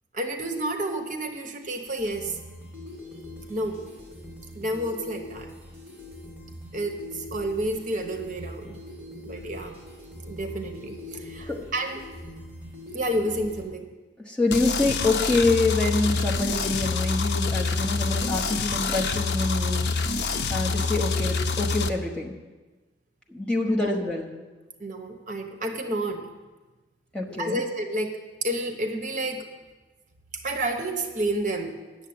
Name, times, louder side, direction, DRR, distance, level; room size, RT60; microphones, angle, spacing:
voice 1, 0.1-2.4 3.5-3.8 4.5-5.5 6.7-8.8 9.3-9.8 10.3-12.1 12.9-13.9 23.6-24.0 24.8-26.2 27.4-29.5 30.3-31.8, right 1 dB, 45° right, 4 dB, 1.0 m, -30 dB
sound 1, 1.6-13.6, left 1 dB, 10° right, 3.2 m, -42 dB
voice 2, 14.3-19.9 20.5-22.3 23.3-24.3 27.1-27.6, left 2 dB, 5° left, -2 dB, 1.0 m, -26 dB
sound 2, 14.5-21.9, left 4 dB, 65° left, 0.6 m, -26 dB
8.9 x 7.1 x 8.7 m, 1.3 s
head